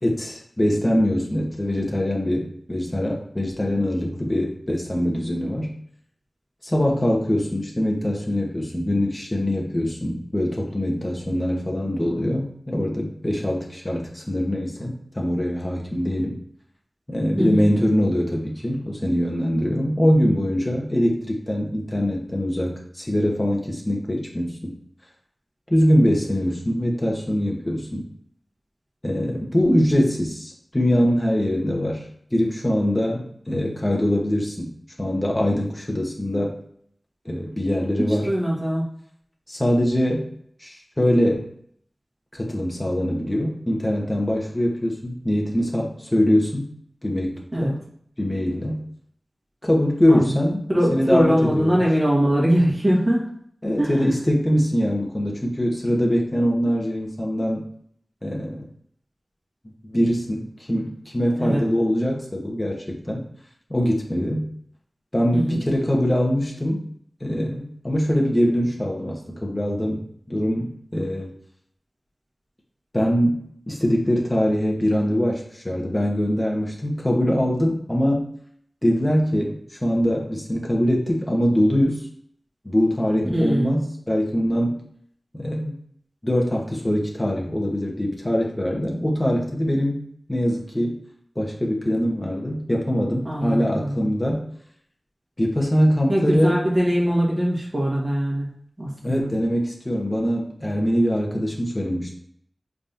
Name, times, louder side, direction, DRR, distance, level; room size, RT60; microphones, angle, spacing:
voice 1, 0.0-5.7 6.6-16.4 17.1-24.8 25.7-28.1 29.0-32.0 32.3-34.7 35.0-36.6 37.2-38.3 39.5-40.3 40.6-41.5 42.3-46.7 47.0-47.8 48.2-48.8 49.6-50.6 50.9-51.8 53.6-57.6 58.2-58.7 59.8-63.2 63.7-64.5 65.1-66.8 67.2-71.3 72.9-78.3 78.8-82.1 82.6-84.8 85.3-85.7 86.2-90.0 90.3-91.0 91.3-94.5 95.4-96.5 99.0-102.1, equal, 25° left, -1 dB, 1.0 m, -23 dB
voice 2, 17.4-17.7 38.1-38.8 47.5-47.7 50.1-50.3 50.7-53.3 53.8-53.9 61.4-61.6 65.3-65.6 83.3-83.9 93.2-94.0 96.1-98.5 98.8-99.3, equal, 40° right, -4 dB, 1.4 m, -22 dB
4.0 x 3.5 x 2.7 m, 0.65 s
cardioid pair, 40°, 0 cm